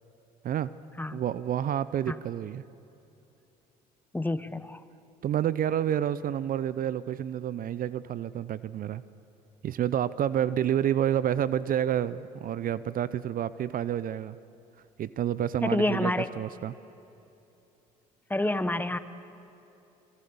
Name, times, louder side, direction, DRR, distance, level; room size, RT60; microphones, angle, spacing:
voice 1, 1.1-2.6 5.2-9.0 9.6-14.4 15.0-16.7, right 10 dB, 45° right, 17 dB, 0.7 m, -29 dB
voice 2, 4.1-4.8 15.6-16.3 18.3-19.0, left 1 dB, 10° left, 13 dB, 1.3 m, -28 dB
28.0 x 22.0 x 7.1 m, 2.9 s
hypercardioid pair, 60°, 20 cm